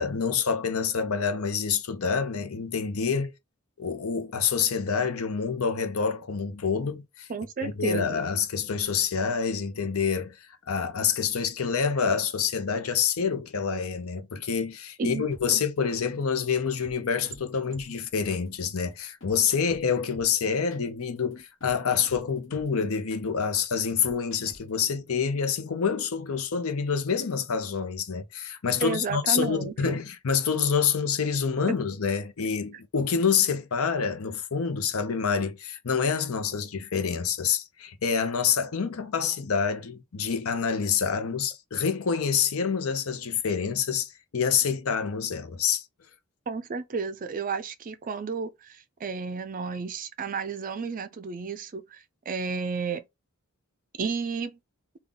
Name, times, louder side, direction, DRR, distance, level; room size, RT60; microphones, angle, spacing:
voice 1, 0.0-3.3 3.8-7.3 7.6-45.8, left 6 dB, 90° left, 0.7 m, -27 dB
voice 2, 7.3-8.2 15.0-15.6 28.8-30.0 46.5-53.0 54.0-54.5, right 5 dB, 40° right, 0.4 m, -32 dB
sound 1, 15.3-24.8, equal, 65° left, 1.2 m, -50 dB
3.6 x 2.3 x 3.8 m
head